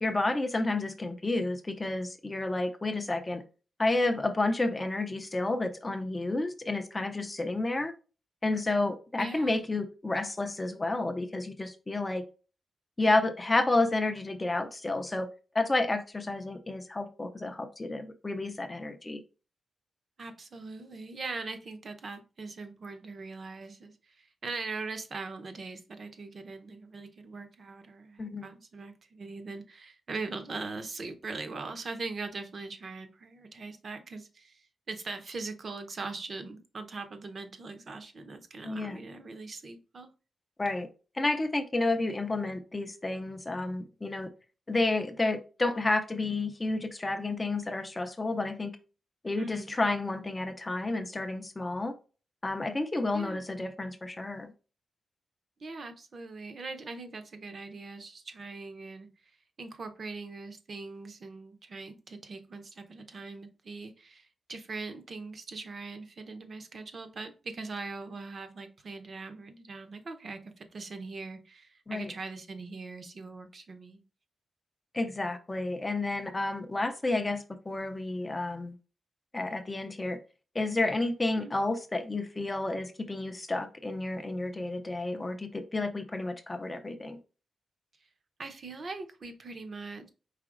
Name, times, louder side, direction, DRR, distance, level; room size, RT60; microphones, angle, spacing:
voice 1, 0.0-3.4 3.8-7.9 8.4-12.2 13.0-15.3 15.5-19.2 28.2-28.4 38.6-39.0 40.6-40.9 41.1-44.3 44.7-48.7 49.2-51.9 52.4-54.5 71.9-72.1 74.9-78.7 79.3-80.2 80.5-87.2, left 2 dB, 20° left, 7 dB, 0.4 m, -30 dB
voice 2, 9.2-9.6 20.2-40.1 49.4-49.7 53.1-53.4 55.6-59.1 59.6-74.0 81.4-81.5 88.4-90.1, right 3 dB, 40° right, 8 dB, 0.6 m, -41 dB
4.8 x 3.8 x 2.4 m, 0.34 s
wide cardioid pair, 170°, 0 cm